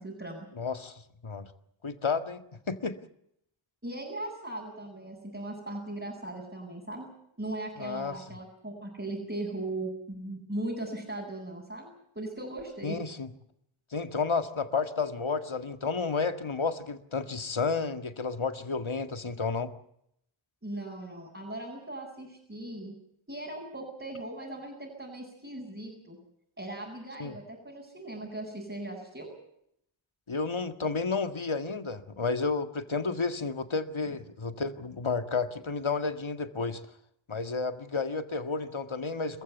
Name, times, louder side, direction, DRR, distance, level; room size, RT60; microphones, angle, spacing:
voice 1, 0.0-0.5 3.8-7.1 7.4-13.0 20.6-22.9 23.3-26.2 26.6-29.3 34.1-34.2, right 1 dB, 25° right, -3 dB, 7.8 m, -38 dB
voice 2, 0.6-1.5 1.8-3.0 7.8-8.2 12.8-13.3 13.9-19.7 24.5-24.6 27.2-27.4 30.3-36.8 37.3-39.4, left 4 dB, 85° left, 9 dB, 2.0 m, -31 dB
27.0 x 15.5 x 8.1 m, 0.74 s
wide cardioid pair, 50°, 47 cm